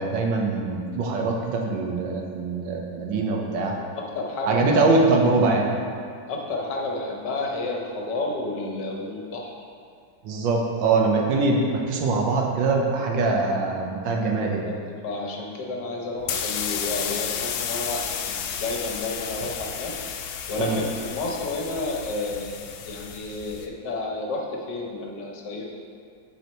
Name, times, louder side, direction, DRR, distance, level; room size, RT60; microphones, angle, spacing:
voice 1, 0.0-3.7 4.5-5.8 10.2-14.6 20.6-20.8, right 3 dB, 90° right, 0 dB, 1.6 m, -23 dB
voice 2, 3.9-4.6 6.3-9.5 14.6-14.8 15.0-19.9 20.5-25.7, left 2 dB, 65° left, -1 dB, 1.5 m, -31 dB
sound 1, 16.2-23.7, left 8 dB, 85° left, 1.3 m, -32 dB
8.0 x 4.8 x 4.4 m, 2.3 s
omnidirectional pair, 2.0 m